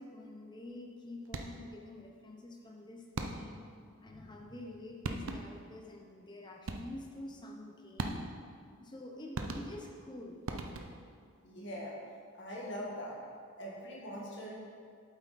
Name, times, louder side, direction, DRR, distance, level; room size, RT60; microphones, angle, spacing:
voice 1, 0.0-3.7 4.0-8.2 8.8-10.4, left 1 dB, 20° left, 1 dB, 0.8 m, -47 dB
sound 1, 1.2-1.7 3.1-3.7 4.7-4.8 5.0-5.7 6.7-7.1 8.0-8.5 9.3-10.0 10.5-11.1, right 2 dB, 75° right, 0.7 m, -39 dB
voice 2, 4.1-4.4 11.4-12.0 12.3-13.2 13.6-14.5, equal, 50° left, -4 dB, 1.8 m, -42 dB
8.1 x 8.1 x 4.2 m, 2.2 s
head